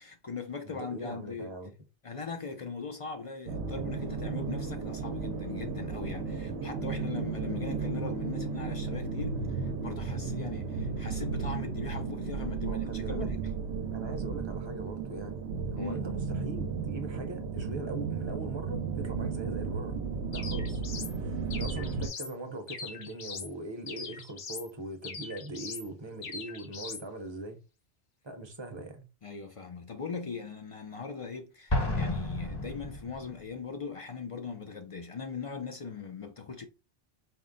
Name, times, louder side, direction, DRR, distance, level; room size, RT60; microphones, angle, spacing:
voice 1, 0.0-1.5 2.0-13.4 15.8-16.1 29.2-36.7, left 5 dB, 55° left, 0.3 m, -40 dB
voice 2, 0.6-1.7 12.6-13.3 13.9-15.4 15.7-20.0 20.3-20.8 21.2-27.6 28.2-29.0, right 2 dB, 30° right, 0.7 m, -41 dB
sound 1, 3.5-22.1, right 5 dB, 80° right, 0.9 m, -34 dB
sound 2, 20.3-21.2 21.5-22.3 22.7-23.5 23.9-24.7 25.0-25.9 26.2-27.0, left 5 dB, 70° left, 1.0 m, -41 dB
Explosion, 31.7-33.5, left 1 dB, 25° left, 0.7 m, -31 dB
4.4 x 2.0 x 3.8 m
omnidirectional pair, 1.1 m